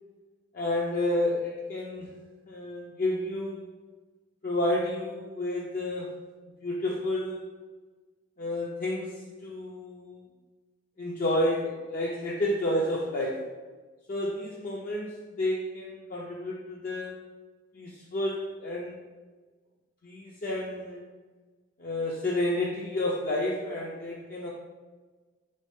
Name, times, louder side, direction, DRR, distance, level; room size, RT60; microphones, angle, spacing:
voice 1, 0.5-2.1 2.5-3.7 4.4-6.2 6.6-7.5 8.4-10.2 11.0-13.5 14.1-17.2 17.7-19.0 20.0-21.0 21.8-24.5, left 1 dB, 45° left, -3 dB, 0.4 m, -30 dB
3.7 x 3.2 x 3.0 m, 1.3 s
head